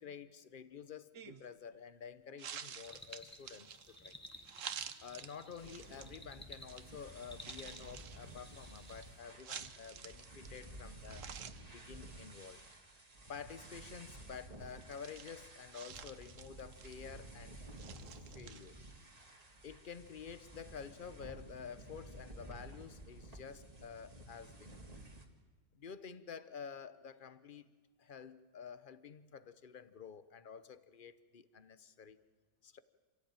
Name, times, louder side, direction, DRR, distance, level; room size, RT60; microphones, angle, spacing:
voice 1, 0.0-4.2 5.0-11.2 11.7-12.6 13.3-17.8 18.2-18.7 19.6-24.9 25.7-27.7 28.0-32.2 32.6-32.8, left 6 dB, 40° left, 14 dB, 1.0 m, -50 dB
sound 1, 1.1-1.5 2.4-6.2 6.7-6.8 7.3-10.7 11.0-11.6 11.9-12.0 12.3-12.7 13.7-14.0 14.8-17.2 17.8-18.9, right 7 dB, 60° right, 1.3 m, -50 dB
sound 2, 2.8-9.2, left 1 dB, 10° left, 1.2 m, -56 dB
sound 3, 5.6-25.3, right 1 dB, 25° right, 2.0 m, -53 dB
27.5 x 16.0 x 9.0 m, 1.4 s
omnidirectional pair, 1.6 m